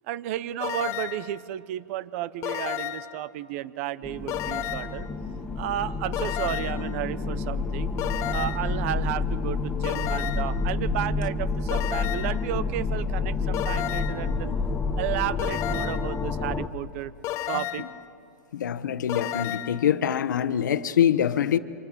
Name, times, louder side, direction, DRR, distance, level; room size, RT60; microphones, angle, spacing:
voice 1, 0.1-5.1 5.6-7.9 8.3-14.6 15.0-17.1 17.5-17.9, right 13 dB, 50° right, 17 dB, 0.8 m, -32 dB
sound 1, 0.6-1.3 2.4-3.2 4.3-5.0 6.1-6.9 8.0-8.7 9.8-10.6 11.7-12.4 13.5-14.3 15.4-16.1 17.2-18.0 19.1-19.8, left 13 dB, 30° left, 0.8 m, -32 dB
sound 2, 4.0-16.7, left 4 dB, 10° left, 1.1 m, -29 dB
voice 2, 18.5-21.6, left 9 dB, 85° left, 12 dB, 1.1 m, -24 dB
28.0 x 26.5 x 7.5 m, 2.5 s
hypercardioid pair, 150°, 10 cm